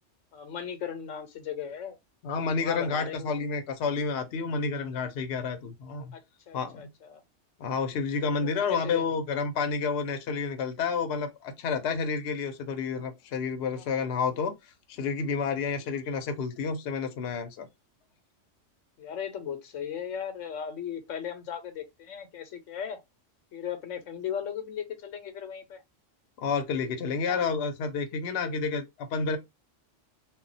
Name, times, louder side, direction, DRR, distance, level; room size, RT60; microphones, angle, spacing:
voice 1, 0.3-2.0 2.6-3.3 6.1-6.2 6.5-7.2 8.6-9.0 13.7-13.9 19.0-23.0 23.5-25.8 27.2-27.4, left 8 dB, 85° left, 1.0 m, -37 dB
voice 2, 2.2-6.1 6.5-6.9 7.6-14.5 14.9-17.7 26.4-29.4, left 5 dB, 65° left, 0.8 m, -30 dB
2.2 x 2.1 x 3.8 m
omnidirectional pair, 1.3 m